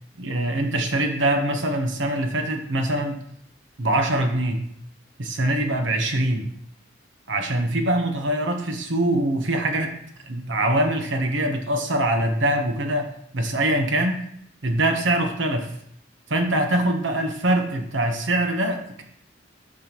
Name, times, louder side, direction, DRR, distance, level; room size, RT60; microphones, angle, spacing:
voice 1, 0.2-3.3 3.8-4.6 5.2-6.5 7.3-10.0 10.3-14.2 14.6-15.7 16.3-19.0, right 1 dB, 80° right, 4 dB, 1.1 m, -23 dB
8.6 x 5.7 x 3.1 m, 0.69 s
head